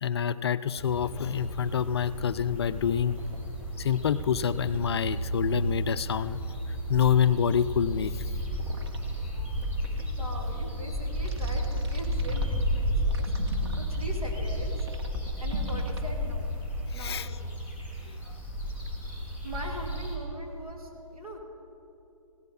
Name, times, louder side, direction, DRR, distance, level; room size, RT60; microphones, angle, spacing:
voice 1, 0.0-3.2 3.8-6.4 6.9-8.2 16.9-17.3 18.3-18.4, left 8 dB, 45° left, 14 dB, 0.4 m, -27 dB
sound 1, 0.8-20.1, equal, 10° right, 2.5 m, -32 dB
sound 2, 1.1-1.5 3.1-3.8 4.2-4.3 4.6-5.2 7.9-8.1 8.5-9.0 9.6-10.0 11.3-12.5 13.1-13.9 14.5-14.6 14.8-16.0, right 4 dB, 45° right, 1.3 m, -47 dB
voice 2, 10.2-14.8 15.4-16.4 16.9-17.6 19.4-21.4, right 1 dB, 80° right, -1 dB, 2.8 m, -40 dB
17.0 x 11.5 x 4.3 m, 2.8 s
figure-of-eight pair, 135°, 18 cm